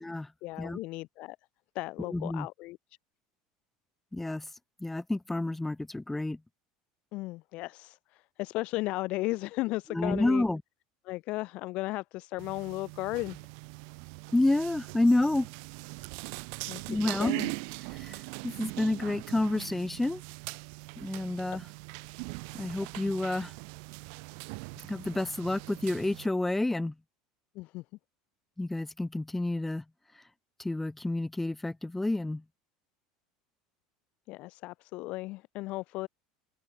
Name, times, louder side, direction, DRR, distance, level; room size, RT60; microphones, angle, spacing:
voice 1, 0.4-1.4 1.7-2.8 7.1-10.5 11.0-13.4 16.7-16.8 17.2-17.5 27.5-27.8 34.3-36.1, left 20 dB, 60° left, 0.6 m, -35 dB
voice 2, 2.1-2.5 4.1-4.5 4.8-6.4 9.9-10.6 14.3-15.5 16.9-17.3 17.9-18.2 18.4-20.2 21.0-21.6 22.5-23.5 24.9-26.9 28.6-29.8 30.6-32.4, left 2 dB, 10° left, 0.6 m, -29 dB
sound 1, 12.4-26.3, right 40 dB or more, 70° right, 1.4 m, -41 dB
open air
hypercardioid pair, 85°, 2 cm